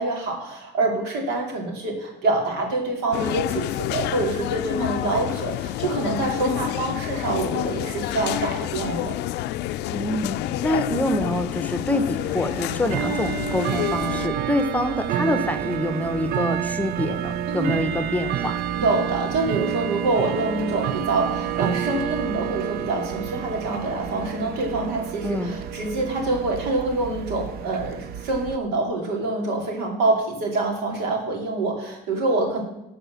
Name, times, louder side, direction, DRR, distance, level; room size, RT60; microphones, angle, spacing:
voice 1, 0.0-9.2 17.5-17.8 18.8-32.6, right 2 dB, 90° right, 1 dB, 2.5 m, -26 dB
sound 1, 3.1-14.3, left 14 dB, 85° left, 0.4 m, -28 dB
voice 2, 9.9-10.4 10.6-18.6 25.2-25.6, left 1 dB, 10° left, 9 dB, 0.8 m, -26 dB
Bell / Tick-tock, 12.2-28.6, right 10 dB, 65° right, 0.5 m, -29 dB
12.0 x 4.3 x 7.0 m, 0.92 s
cardioid pair, 110°, 17 cm